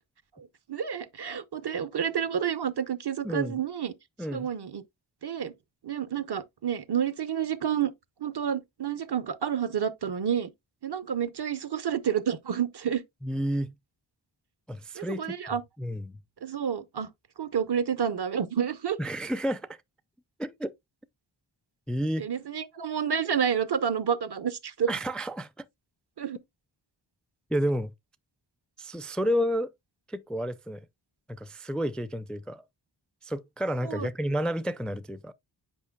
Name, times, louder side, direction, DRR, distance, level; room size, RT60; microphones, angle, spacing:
voice 1, 0.4-3.9 4.3-4.8 5.2-5.5 5.8-7.9 8.2-10.5 10.8-13.0 14.9-15.6 16.4-17.1 17.4-19.0 22.2-24.9 26.2-26.4 33.8-34.1, right 8 dB, 55° right, 0.8 m, -29 dB
voice 2, 3.2-3.6 4.2-4.5 13.2-13.7 14.7-16.2 19.0-19.8 20.4-20.7 21.9-22.3 24.9-25.7 27.5-27.9 28.8-29.7 30.1-30.8 31.3-32.6 33.2-35.3, equal, ahead, 0.4 m, -31 dB
8.5 x 5.1 x 2.2 m
wide cardioid pair, 65°, 47 cm